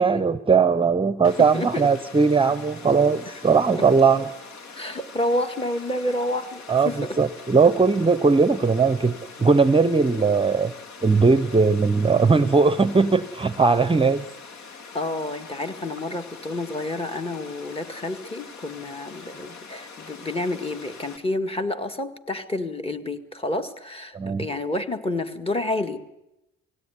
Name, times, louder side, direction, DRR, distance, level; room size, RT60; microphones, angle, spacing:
voice 1, 0.0-4.3 6.7-10.7 11.0-14.3 24.1-24.5, right 4 dB, 20° right, 13 dB, 0.7 m, -19 dB
Water, 1.2-21.2, left 5 dB, 65° left, 2.5 m, -43 dB
voice 2, 1.5-1.9 3.3-3.4 4.1-4.3 4.7-7.2 14.9-26.0, left 1 dB, 20° left, 7 dB, 1.9 m, -29 dB
19.5 x 16.5 x 9.8 m, 0.91 s
cardioid pair, 90°, 30 cm